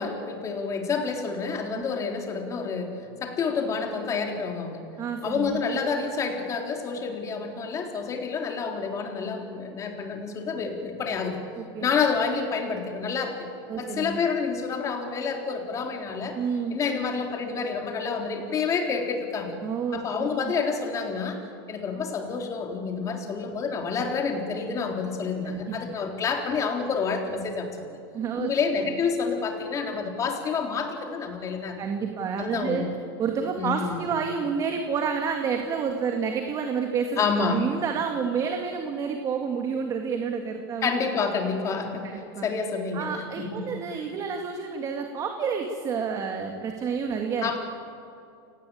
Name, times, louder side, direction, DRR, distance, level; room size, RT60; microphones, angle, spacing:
voice 1, 0.0-4.9 5.2-11.4 11.8-13.5 13.8-16.4 16.7-19.5 19.9-21.4 21.7-28.0 28.4-31.8 32.4-32.9 33.6-34.0 37.2-37.7 40.8-43.7 47.4-47.6, left 5 dB, 25° left, 2 dB, 3.8 m, -28 dB
voice 2, 5.0-5.6 11.6-11.9 13.7-14.2 16.4-16.8 19.6-20.5 25.4-25.8 28.1-28.5 31.8-32.9 33.2-37.2 37.5-40.9 42.0-42.5 42.9-47.6, right 6 dB, 25° right, 4 dB, 2.2 m, -29 dB
29.0 x 19.0 x 8.6 m, 2.5 s
supercardioid pair, 145°, 13 cm